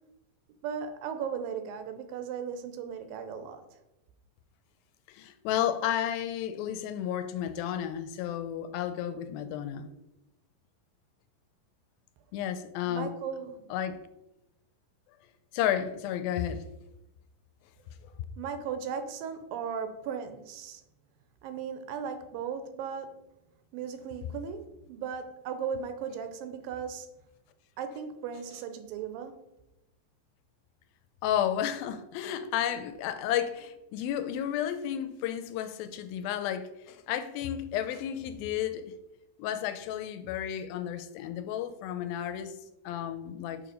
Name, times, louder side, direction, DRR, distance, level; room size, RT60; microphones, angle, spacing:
voice 1, 0.6-3.6 12.8-13.7 18.4-20.8 21.4-23.2 23.7-27.1 27.8-29.5, right 7 dB, 80° right, 2.3 m, -37 dB
voice 2, 5.1-9.9 12.3-13.1 13.7-14.0 15.5-16.7 31.2-38.9 39.4-42.5 42.9-43.6, left 10 dB, 85° left, 2.4 m, -32 dB
6.7 x 4.7 x 5.1 m
omnidirectional pair, 4.2 m